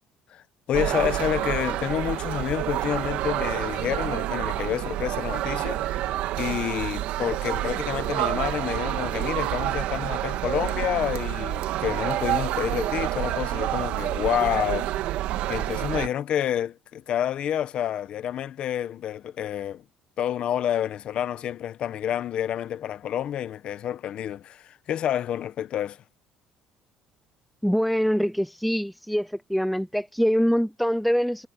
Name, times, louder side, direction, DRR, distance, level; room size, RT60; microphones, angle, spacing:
voice 1, 0.7-14.9 15.5-19.8 20.2-26.0, left 10 dB, 50° left, 1.0 m, -29 dB
sound 1, 0.7-16.1, right 14 dB, 75° right, 1.5 m, -28 dB
voice 2, 27.6-31.5, equal, ahead, 0.4 m, -24 dB
cardioid pair, 135°, 2 cm